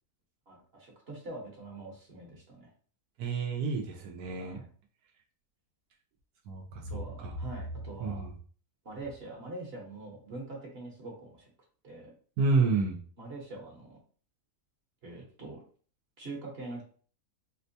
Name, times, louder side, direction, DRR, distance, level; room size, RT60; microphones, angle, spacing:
voice 1, 0.5-2.7 4.4-4.7 6.9-8.3 8.8-11.5 11.8-12.1 13.2-14.0 15.0-15.6 16.2-16.8, right 2 dB, 45° right, -2 dB, 1.1 m, -43 dB
voice 2, 3.2-4.6 6.5-7.4 8.0-8.3 12.4-13.0, right 4 dB, 80° right, 1 dB, 1.1 m, -30 dB
4.3 x 2.2 x 2.7 m, 0.43 s
omnidirectional pair, 1.7 m